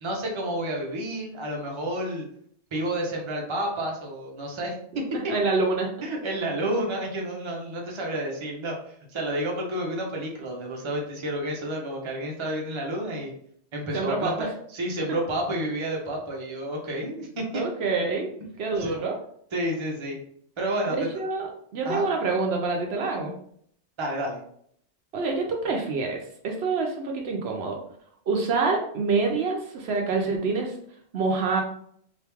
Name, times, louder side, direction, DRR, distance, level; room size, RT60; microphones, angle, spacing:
voice 1, 0.0-2.3 2.7-5.3 6.0-8.8 9.1-13.3 13.7-17.6 18.8-18.9 19.5-20.2 20.6-21.0 21.8-22.1 24.0-24.4, right 1 dB, 30° right, -1 dB, 0.7 m, -30 dB
voice 2, 5.1-5.9 13.9-14.5 17.5-18.3 18.6-19.1 21.1-23.3 25.1-26.2 26.4-27.8 28.3-30.7 31.1-31.6, right 4 dB, 70° right, 1 dB, 0.8 m, -26 dB
3.0 x 2.6 x 3.4 m, 0.66 s
omnidirectional pair, 1.2 m